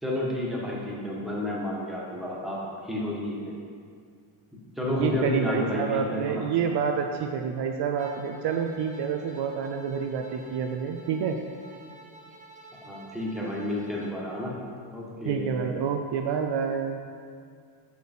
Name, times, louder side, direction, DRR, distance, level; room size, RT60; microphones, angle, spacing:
voice 1, 0.0-3.5 4.7-6.5 12.8-14.5 14.9-15.6, left 1 dB, ahead, -5 dB, 1.5 m, -31 dB
voice 2, 4.9-11.4 15.3-17.0, right 7 dB, 55° right, 3 dB, 0.6 m, -28 dB
Bowed string instrument, 8.0-14.2, right 2 dB, 15° right, 0.7 m, -50 dB
6.3 x 5.5 x 4.5 m, 2.1 s
cardioid pair, 110°, 49 cm